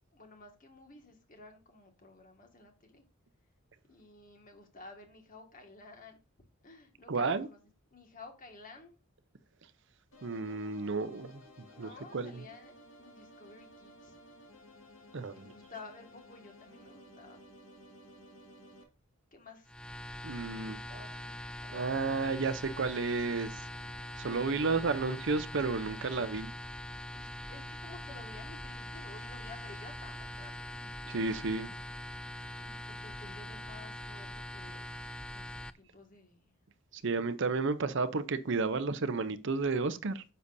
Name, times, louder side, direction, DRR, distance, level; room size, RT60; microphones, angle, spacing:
voice 1, 0.1-3.0 3.9-6.2 6.6-7.6 7.9-9.0 11.7-14.2 15.3-17.4 19.3-19.7 20.7-22.6 24.4-25.1 27.1-30.9 32.6-34.9 35.3-36.6, left 3 dB, 40° left, 1.9 m, -53 dB
voice 2, 7.1-7.5 10.2-11.4 11.8-12.4 15.1-15.5 20.2-20.8 21.7-23.6 24.2-26.5 31.1-31.7 36.9-40.2, right 4 dB, 60° right, 0.7 m, -32 dB
sound 1, 10.1-18.8, left 1 dB, 75° left, 2.1 m, -56 dB
sound 2, 19.7-35.7, left 1 dB, 5° left, 0.3 m, -43 dB
9.7 x 6.9 x 2.7 m
head